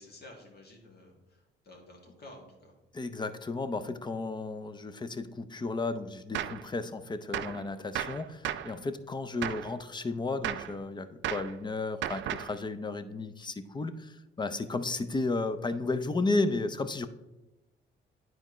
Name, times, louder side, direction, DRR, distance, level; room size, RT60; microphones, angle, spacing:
voice 1, 0.0-2.7, left 1 dB, 55° left, 0 dB, 2.0 m, -52 dB
voice 2, 2.9-17.1, left 3 dB, 20° left, 11 dB, 0.6 m, -33 dB
Gunshot gunfire, 6.3-6.7 7.3-7.6 7.9-8.7 9.4-9.7 10.4-10.7 11.2-11.5 12.0-12.6, right 11 dB, 70° right, 0.4 m, -34 dB
9.6 x 4.5 x 3.1 m, 0.98 s
cardioid pair, 90°, 20 cm